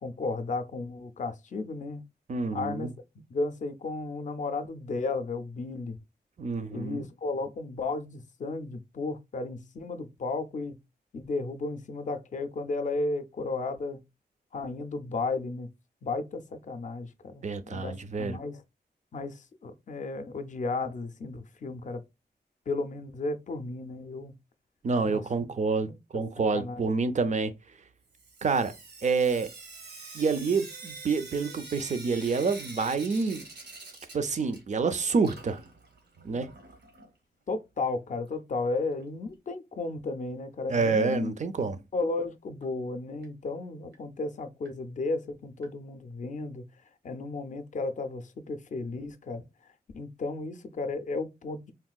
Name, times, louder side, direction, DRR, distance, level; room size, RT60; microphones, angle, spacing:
voice 1, 0.0-2.0 2.5-2.9 3.3-6.0 6.7-10.8 11.1-14.0 14.5-15.7 16.0-18.6 19.1-22.0 22.7-24.3 25.0-25.2 25.8-26.2 26.5-26.9 37.5-41.3 41.9-46.6 47.0-49.4 49.9-51.7, left 3 dB, 45° left, 0.4 m, -34 dB
voice 2, 2.3-2.9 6.4-7.1 17.4-18.4 24.8-25.9 26.1-27.5 28.4-28.7 29.0-29.5 30.1-33.4 34.1-35.6 36.2-36.5 40.7-41.8, right 4 dB, 45° right, 0.4 m, -28 dB
Sink (filling or washing) / Drip, 28.1-34.9 35.1-37.1 38.3-38.4 38.7-38.8 39.0-39.1 42.0-42.1 42.6-42.7 43.2-43.3 43.9-44.0 44.7-44.8 45.6-45.7, right 3 dB, 80° right, 0.8 m, -46 dB
3.6 x 2.4 x 2.2 m
wide cardioid pair, 110°, 17 cm